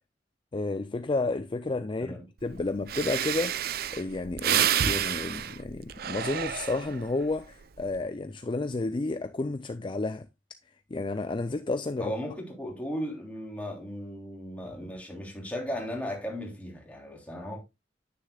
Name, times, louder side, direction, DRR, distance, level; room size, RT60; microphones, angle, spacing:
voice 1, 0.5-10.3 10.9-12.1, left 3 dB, 30° left, 0.4 m, -31 dB
Breathing, 2.5-2.6 2.9-7.1 7.6-8.0, right 9 dB, 55° right, 0.5 m, -29 dB
voice 2, 12.0-17.6, equal, 10° left, 3.3 m, -36 dB
9.8 x 9.7 x 2.3 m
head